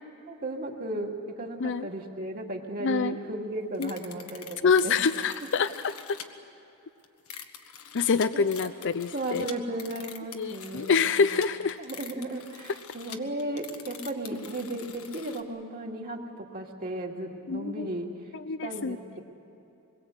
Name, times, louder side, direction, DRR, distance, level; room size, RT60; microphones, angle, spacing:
voice 1, 0.3-5.0 5.4-5.5 8.3-8.7 9.1-11.4 11.8-18.1 18.6-19.2, right 1 dB, 40° right, 0 dB, 2.5 m, -35 dB
voice 2, 2.8-3.2 3.8-3.9 4.6-5.9 7.9-9.5 10.3-11.8 17.5-17.9 18.5-19.2, left 5 dB, 55° left, 12 dB, 0.5 m, -26 dB
sound 1, 3.7-6.3 7.0-15.4, left 8 dB, 75° left, 1.5 m, -45 dB
25.5 x 22.0 x 8.0 m, 3.0 s
head